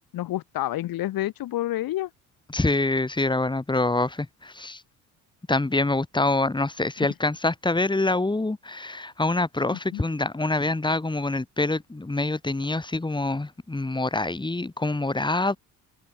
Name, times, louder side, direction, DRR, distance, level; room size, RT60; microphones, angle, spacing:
voice 1, 0.0-2.1 7.0-7.1 9.7-10.0, left 14 dB, 65° left, 1.2 m, -29 dB
voice 2, 2.5-4.8 5.5-15.6, left 2 dB, 10° left, 3.2 m, -25 dB
cardioid pair, 100°, 38 cm